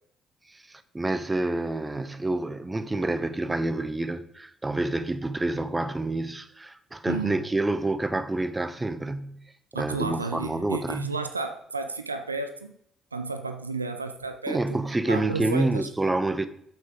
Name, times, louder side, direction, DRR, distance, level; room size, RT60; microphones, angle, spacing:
voice 1, 0.5-9.4 9.7-11.1 14.5-16.5, right 2 dB, 20° right, 0.8 m, -28 dB
voice 2, 7.1-7.4 9.7-12.8 13.1-14.8 15.1-15.9, right 3 dB, 90° right, 0.4 m, -32 dB
8.6 x 7.9 x 3.6 m
figure-of-eight pair, 45°, 0 cm